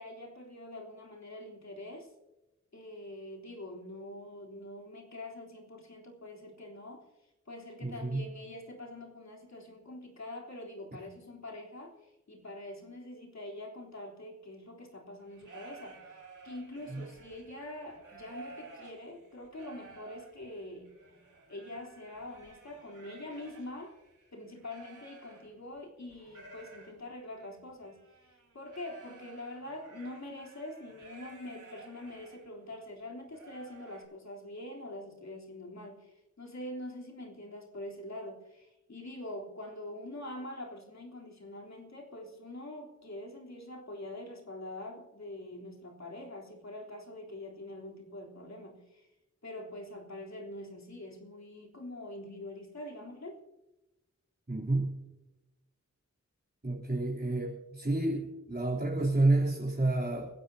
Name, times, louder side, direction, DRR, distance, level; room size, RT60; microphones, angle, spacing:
voice 1, 0.0-2.1 2.7-7.0 7.5-20.9 21.5-24.0 24.3-49.1 49.4-53.4, left 1 dB, 65° left, -2 dB, 3.5 m, -44 dB
voice 2, 7.8-8.2 16.9-17.0 54.5-54.9 56.6-60.3, right 2 dB, 30° right, -5 dB, 3.3 m, -29 dB
sound 1, 15.2-25.8 26.1-32.5 32.9-33.0 33.3-34.0, right 3 dB, 85° right, 3.6 m, -53 dB
30.0 x 11.0 x 2.8 m, 1.0 s
wide cardioid pair, 60°, 30 cm